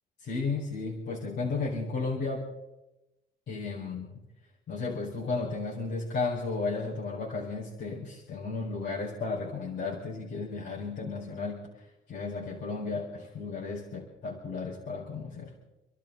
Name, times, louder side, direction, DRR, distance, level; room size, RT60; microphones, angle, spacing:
voice 1, 0.2-2.5 3.5-4.2 4.7-15.5, left 4 dB, 60° left, -4 dB, 4.6 m, -34 dB
29.5 x 12.0 x 3.9 m, 0.99 s
cardioid pair, 90°, 20 cm